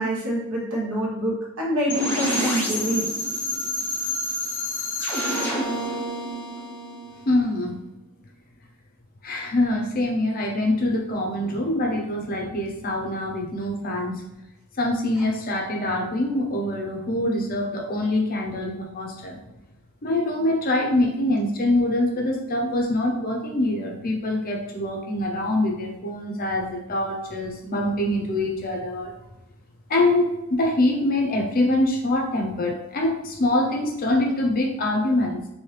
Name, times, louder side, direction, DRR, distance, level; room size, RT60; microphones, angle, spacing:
voice 1, 0.0-3.1, equal, 65° right, -4 dB, 1.1 m, -26 dB
sound 1, 1.9-7.7, equal, 10° left, 0.8 m, -28 dB
voice 2, 7.3-7.8 9.2-14.2 14.8-19.4 20.0-29.1 29.9-35.4, left 1 dB, 40° left, 1 dB, 0.6 m, -24 dB
3.1 x 2.7 x 3.2 m, 0.93 s
head